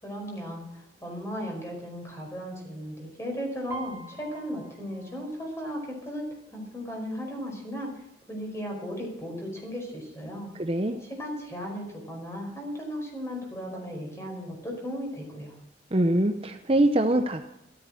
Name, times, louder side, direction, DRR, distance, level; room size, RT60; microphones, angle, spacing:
voice 1, 0.0-7.9 8.3-10.5 11.0-15.5, equal, 15° left, 1 dB, 5.1 m, -36 dB
Piano, 3.7-7.3 7.7-8.1 8.4-9.1 9.7-9.8 10.0-11.0 11.4-11.5, right 3 dB, 15° right, 3.3 m, -45 dB
voice 2, 10.5-11.0 15.9-17.5, right 1 dB, 30° right, 6 dB, 0.7 m, -24 dB
13.5 x 13.0 x 6.3 m, 0.83 s
head